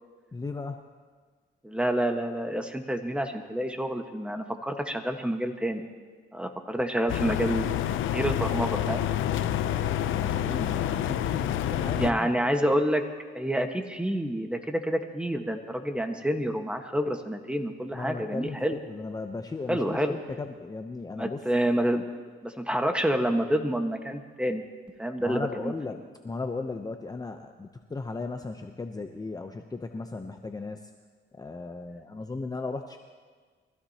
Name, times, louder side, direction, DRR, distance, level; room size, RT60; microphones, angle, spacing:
voice 1, 0.3-0.8 9.7-12.7 17.9-21.4 25.2-25.9 26.2-30.8 31.4-33.0, left 3 dB, 20° left, 5 dB, 0.8 m, -36 dB
voice 2, 1.6-5.9 6.3-7.9 8.1-9.1 11.9-13.0 13.3-18.8 19.7-20.1 21.2-22.0 22.4-24.6 25.0-25.7, right 1 dB, 5° right, 5 dB, 1.4 m, -28 dB
sound 1, 7.1-12.1, left 11 dB, 80° left, 0.6 m, -28 dB
23.5 x 16.0 x 2.9 m, 1.5 s
cardioid pair, 90°, 20 cm